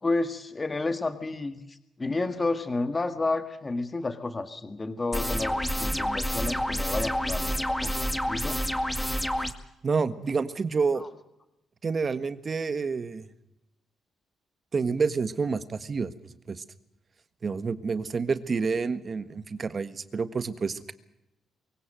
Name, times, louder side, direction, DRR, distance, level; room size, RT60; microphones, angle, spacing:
voice 1, 0.0-7.5 7.8-8.6 10.9-11.1, left 3 dB, 25° left, 9 dB, 1.7 m, -31 dB
sound 1, 5.1-9.5, equal, 5° left, 2.0 m, -28 dB
voice 2, 9.8-11.0 11.8-13.3 14.7-16.1 16.5-16.6 17.4-20.9, right 5 dB, 40° right, 13 dB, 1.5 m, -28 dB
23.5 x 16.5 x 7.7 m, 0.88 s
cardioid pair, 90°, 0 cm